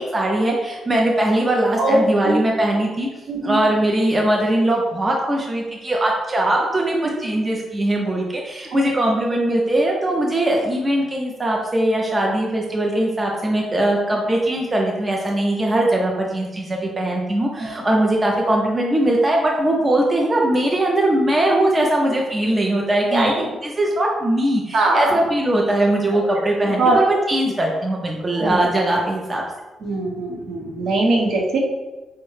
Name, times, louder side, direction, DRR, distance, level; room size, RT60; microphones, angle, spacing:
voice 1, 0.0-3.1 3.4-29.4, right 1 dB, 20° right, -1 dB, 0.4 m, -20 dB
voice 2, 3.3-3.6 7.0-7.2 8.7-8.9 17.6-17.7 23.1-23.5 24.7-25.2 26.4-26.5 26.8-27.0 28.4-28.7 29.8-31.6, right 2 dB, 65° right, -1 dB, 0.8 m, -21 dB
4.6 x 2.1 x 3.1 m, 1.1 s
wide cardioid pair, 175°, 0 cm